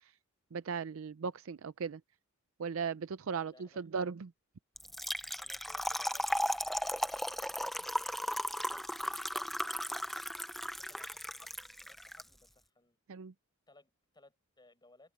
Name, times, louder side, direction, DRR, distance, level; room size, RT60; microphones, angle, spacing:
voice 1, 0.5-2.0 2.6-4.3 13.1-13.3, right 6 dB, 70° right, 0.5 m, -37 dB
voice 2, 3.3-3.9 5.4-8.4 8.7-10.5 10.8-13.0 13.7-15.1, left 2 dB, 20° left, 5.8 m, -63 dB
Trickle dribble / Fill (with liquid), 4.8-12.2, equal, ahead, 0.6 m, -36 dB
head